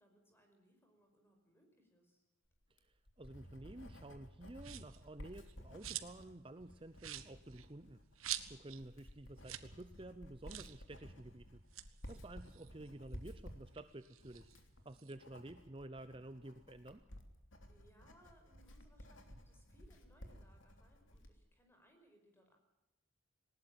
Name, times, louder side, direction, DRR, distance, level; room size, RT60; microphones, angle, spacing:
voice 1, 0.0-2.2 8.6-8.9 14.9-15.2 17.6-22.6, equal, 10° left, 4 dB, 5.3 m, -69 dB
Writing, 2.6-21.4, equal, 60° left, 3.2 m, -55 dB
voice 2, 2.7-11.6 12.1-14.5 14.8-17.0, right 1 dB, 25° right, 11 dB, 0.7 m, -52 dB
sound 1, 4.6-5.0 5.4-6.3 6.6-6.7 7.0-8.8 9.1-9.2 9.4-9.7 10.0-10.1 10.5-10.8 11.5-13.3 13.7-15.2, right 12 dB, 70° right, 1.4 m, -46 dB
20.0 x 19.0 x 7.6 m, 0.98 s
head